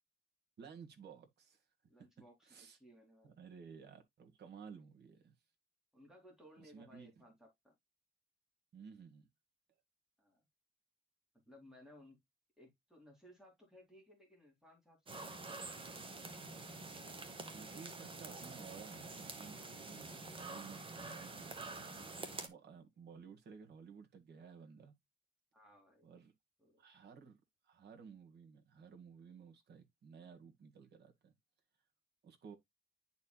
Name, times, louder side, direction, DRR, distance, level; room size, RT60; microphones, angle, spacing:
voice 1, 0.6-1.6 2.5-2.8 3.2-5.3 6.6-7.2 8.7-9.3 17.5-24.9 26.0-26.3 26.8-27.4 27.6-31.3 32.2-32.6, right 6 dB, 60° right, 1.6 m, -55 dB
voice 2, 1.9-3.3 5.9-7.7 10.2-10.4 11.5-12.2 12.6-16.1 25.5-26.2 26.6-26.8, equal, 5° right, 3.1 m, -62 dB
sound 1, 15.1-22.5, right 3 dB, 25° right, 1.2 m, -47 dB
10.5 x 4.4 x 2.3 m
wide cardioid pair, 145°, 19 cm